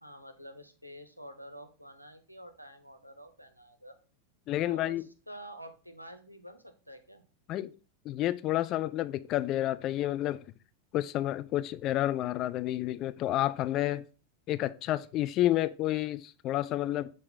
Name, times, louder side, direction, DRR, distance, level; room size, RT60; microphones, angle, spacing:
voice 1, 0.0-3.9 4.6-7.2, equal, 90° right, 0.7 m, -48 dB
voice 2, 4.5-5.1 7.5-7.7 8.0-10.4 10.9-14.0 14.5-17.1, left 14 dB, 35° left, 0.3 m, -30 dB
6.6 x 3.6 x 3.9 m
figure-of-eight pair, 90°, 0 cm